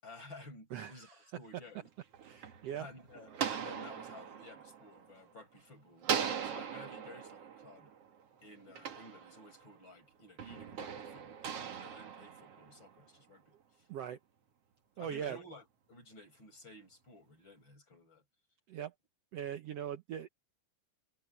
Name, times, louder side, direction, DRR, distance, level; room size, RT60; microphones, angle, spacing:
voice 1, 0.0-1.9 2.7-7.9 8.4-13.9 15.0-18.2, left 2 dB, 30° left, 8.7 m, -54 dB
voice 2, 0.7-1.3 2.2-2.9 13.9-14.2 15.0-15.4 18.7-18.9 19.3-20.3, right 9 dB, 85° right, 1.4 m, -41 dB
sound 1, 1.9-5.6 6.0-9.8 10.4-13.0, right 8 dB, 50° right, 2.4 m, -40 dB
omnidirectional pair, 4.1 m